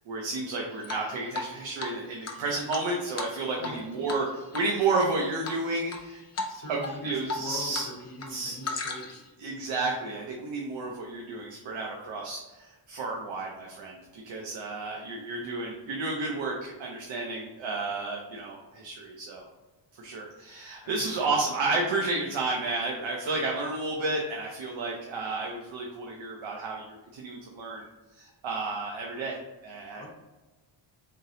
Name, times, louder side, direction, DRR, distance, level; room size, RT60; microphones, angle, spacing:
voice 1, 0.1-6.2 6.7-6.8 7.0-7.9 8.3-8.6 9.4-19.4 20.0-27.9 28.2-29.4 29.6-30.1, right 3 dB, 80° right, -1 dB, 0.7 m, -31 dB
Drip, 0.8-1.5 1.8-1.9 2.2-3.8 4.1-4.2 4.5-5.1 5.4-6.0 6.3-6.5 6.8-7.9 8.1-9.3, left 3 dB, 35° left, 0.6 m, -35 dB
voice 2, 6.5-9.2 21.0-21.3 29.9-30.1, left 1 dB, 55° left, 0 dB, 1.0 m, -41 dB
3.7 x 2.7 x 3.7 m, 1.2 s
wide cardioid pair, 165°, 45 cm